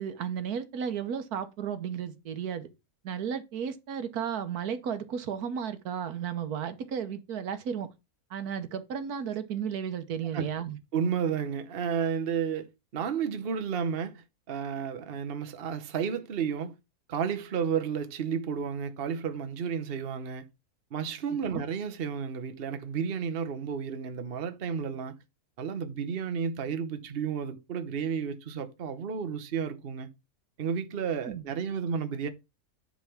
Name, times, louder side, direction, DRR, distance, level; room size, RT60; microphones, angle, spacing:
voice 1, 0.0-2.7 3.0-7.9 8.3-10.8 21.5-21.6 31.2-31.4, right 8 dB, 80° right, 1.5 m, -34 dB
voice 2, 10.9-16.7 17.1-20.5 20.9-25.1 25.6-30.1 30.6-32.3, right 7 dB, 45° right, 1.0 m, -32 dB
10.0 x 3.5 x 5.7 m
omnidirectional pair, 1.6 m